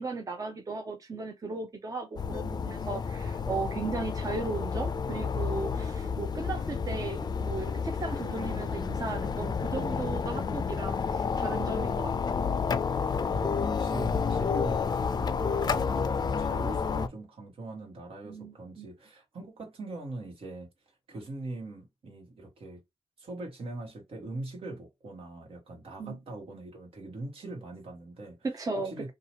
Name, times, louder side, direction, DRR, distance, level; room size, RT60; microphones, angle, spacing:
voice 1, 0.0-12.5 18.2-18.9 26.0-26.2 28.4-29.1, right 3 dB, 35° right, 0.6 m, -36 dB
sound 1, 2.2-17.1, left 5 dB, 45° left, 0.4 m, -30 dB
voice 2, 13.3-20.7 21.1-22.8 23.2-28.4 28.8-29.1, right 2 dB, 75° right, 1.3 m, -41 dB
2.8 x 2.4 x 2.9 m
cardioid pair, 85°, 10 cm